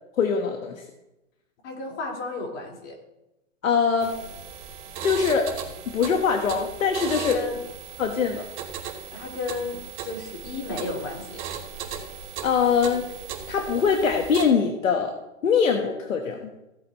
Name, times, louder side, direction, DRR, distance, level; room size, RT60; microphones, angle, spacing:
voice 1, 0.2-0.8 3.6-4.2 5.0-5.5 5.9-7.4 8.0-8.4 12.4-13.0 13.5-15.1 15.4-16.4, left 6 dB, 85° left, 3 dB, 1.6 m, -22 dB
voice 2, 1.6-2.9 7.3-7.6 9.1-11.4, left 3 dB, 60° left, -2 dB, 4.8 m, -33 dB
sound 1, 4.0-14.4, right 7 dB, 30° right, 2.6 m, -37 dB
16.5 x 8.2 x 3.2 m, 0.94 s
hypercardioid pair, 135°, 39 cm